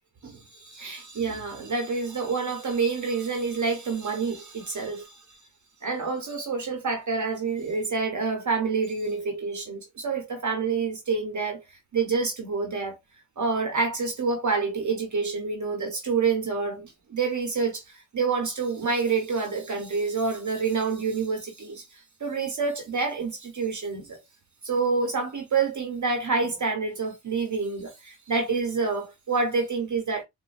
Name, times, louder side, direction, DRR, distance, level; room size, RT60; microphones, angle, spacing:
voice 1, 0.2-5.4 5.8-11.6 11.9-13.0 13.4-24.2 24.6-30.2, right 4 dB, 50° right, 1.0 m, -28 dB
3.8 x 2.5 x 2.5 m
wide cardioid pair, 115°, 38 cm